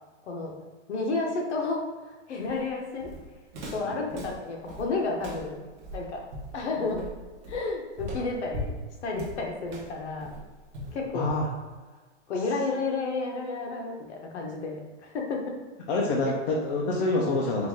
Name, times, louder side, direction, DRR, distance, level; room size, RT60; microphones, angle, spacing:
voice 1, 0.9-3.1 3.7-5.7 5.9-6.2 6.5-7.0 7.5-8.7 9.0-10.3 10.9-11.3 12.3-15.4, left 3 dB, 65° left, 0 dB, 1.1 m, -31 dB
Walk footsteps, 2.4-11.7, equal, 40° right, 1.0 m, -40 dB
voice 2, 11.1-11.5 15.9-17.7, left 2 dB, 45° left, -3 dB, 0.7 m, -26 dB
4.5 x 2.6 x 3.6 m, 1.3 s
supercardioid pair, 170°, 36 cm